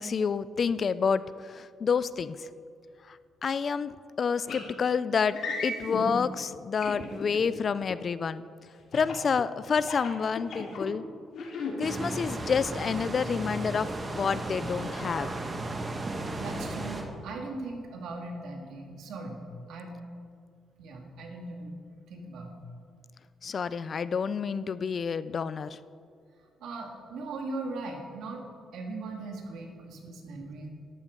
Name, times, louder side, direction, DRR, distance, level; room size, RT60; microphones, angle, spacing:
voice 1, 0.0-2.5 3.1-3.2 3.4-3.9 4.2-5.3 5.6-8.4 8.9-11.0 11.8-13.9 14.1-15.3 23.4-25.8, left 6 dB, 45° left, 15 dB, 0.4 m, -28 dB
sound 1, 4.5-4.7 5.3-6.0 6.8-7.4 8.9-9.3 9.8-10.8 11.3-11.7, left 4 dB, 70° left, 2.5 m, -35 dB
sound 2, 11.8-17.0, right 2 dB, 35° right, 1.7 m, -35 dB
voice 2, 16.4-19.4 19.7-20.0 20.8-21.8 22.1-22.6 26.6-28.5 28.7-30.7, right 3 dB, 80° right, 2 dB, 2.0 m, -39 dB
13.0 x 11.5 x 3.8 m, 2.2 s
cardioid pair, 90°, 0 cm